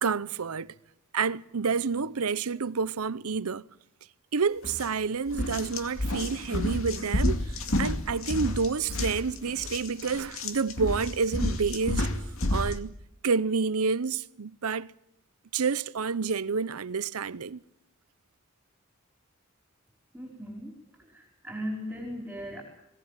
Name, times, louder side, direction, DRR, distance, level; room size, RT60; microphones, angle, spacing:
voice 1, 0.0-0.7 1.1-3.6 4.3-12.1 12.5-12.9 13.2-14.9 15.5-17.6, right 5 dB, 90° right, 0.8 m, -29 dB
sound 1, 4.6-4.9 5.3-12.8, left 1 dB, 65° left, 2.3 m, -30 dB
voice 2, 20.1-20.7 21.0-22.6, equal, 5° right, 4.6 m, -37 dB
21.0 x 18.5 x 9.1 m
head